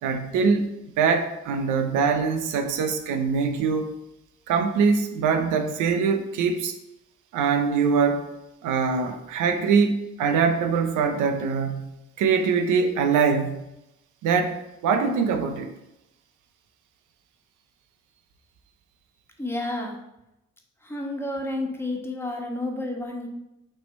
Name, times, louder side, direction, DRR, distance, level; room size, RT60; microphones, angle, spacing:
voice 1, 0.0-0.7 1.0-3.9 4.5-6.7 7.3-8.3 8.6-13.7 14.2-15.7, right 5 dB, 90° right, 7 dB, 0.8 m, -23 dB
voice 2, 19.4-20.0 20.8-23.3, left 2 dB, 10° left, 1 dB, 1.3 m, -30 dB
6.3 x 3.4 x 5.3 m, 0.89 s
cardioid pair, 90°, 30 cm